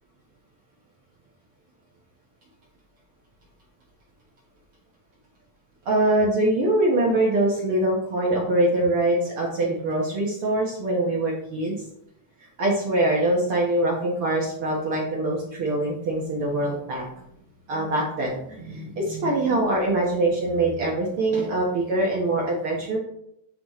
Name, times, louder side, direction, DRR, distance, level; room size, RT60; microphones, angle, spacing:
voice 1, 5.9-11.8 12.6-17.1 17.7-23.0, right 1 dB, 55° right, -3 dB, 1.8 m, -23 dB
9.2 x 4.8 x 3.6 m, 0.76 s
omnidirectional pair, 3.7 m